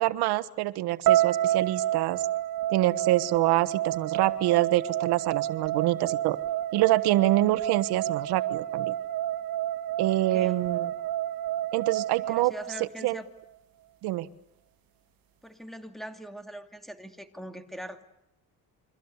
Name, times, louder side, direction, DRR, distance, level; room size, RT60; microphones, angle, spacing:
voice 1, 0.0-2.2 2.7-6.4 6.7-8.9 10.0-10.9 11.7-12.5 13.0-13.2 14.0-14.3, right 16 dB, 90° right, 15 dB, 1.4 m, -26 dB
sound 1, 1.1-13.2, right 13 dB, 65° right, 2.0 m, -29 dB
voice 2, 12.3-13.3 15.4-18.0, right 1 dB, ahead, 5 dB, 2.8 m, -42 dB
29.0 x 24.0 x 8.2 m, 0.82 s
cardioid pair, 140°, 38 cm